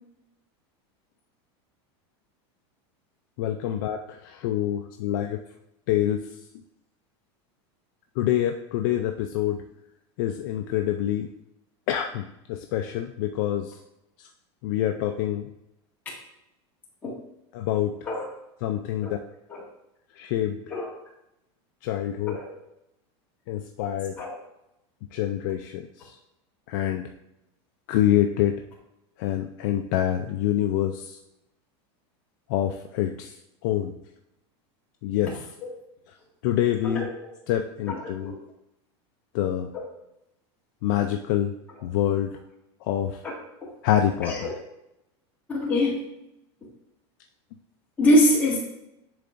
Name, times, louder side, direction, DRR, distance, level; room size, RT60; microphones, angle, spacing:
voice 1, 3.4-5.4 5.9-6.2 8.2-9.6 10.2-11.3 11.9-13.7 14.6-15.5 17.5-17.9 18.6-19.2 20.1-20.6 21.8-22.4 23.5-24.1 25.1-26.2 26.7-27.0 27.9-28.5 29.2-31.2 32.5-33.3 33.6-33.9 35.0-35.5 36.4-37.1 37.5-38.3 39.3-39.7 40.8-41.5 41.8-42.3 42.8-43.2 43.8-44.5, left 11 dB, 45° left, 5 dB, 0.4 m, -26 dB
voice 2, 37.9-38.4 43.2-43.3 44.2-44.5 45.5-46.0 48.0-48.6, left 1 dB, 10° left, -6 dB, 1.7 m, -23 dB
10.0 x 3.8 x 2.5 m, 0.85 s
supercardioid pair, 175°, 14 cm